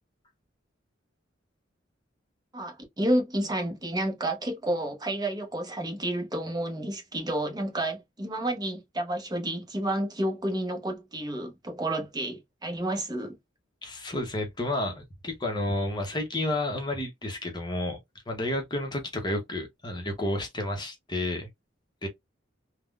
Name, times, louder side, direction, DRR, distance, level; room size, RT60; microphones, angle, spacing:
voice 1, 2.5-13.4, right 1 dB, 20° right, 0.8 m, -30 dB
voice 2, 13.8-18.0 18.3-21.5 22.0-22.1, left 1 dB, 25° left, 0.7 m, -31 dB
3.5 x 2.1 x 2.3 m
head